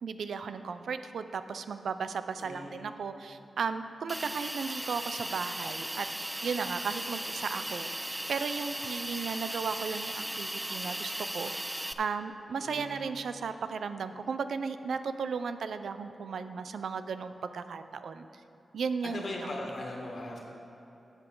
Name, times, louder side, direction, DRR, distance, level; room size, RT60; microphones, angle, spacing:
voice 1, 0.0-6.1 6.4-7.9 8.3-18.3 18.7-19.6, right 5 dB, 85° right, 10 dB, 0.4 m, -35 dB
voice 2, 2.4-3.0 12.6-13.1 19.0-20.4, left 1 dB, 50° left, -1 dB, 1.6 m, -39 dB
Hiss, 4.1-11.9, right 1 dB, 10° right, 0.3 m, -37 dB
13.0 x 8.1 x 3.8 m, 3.0 s
wide cardioid pair, 140°, 0 cm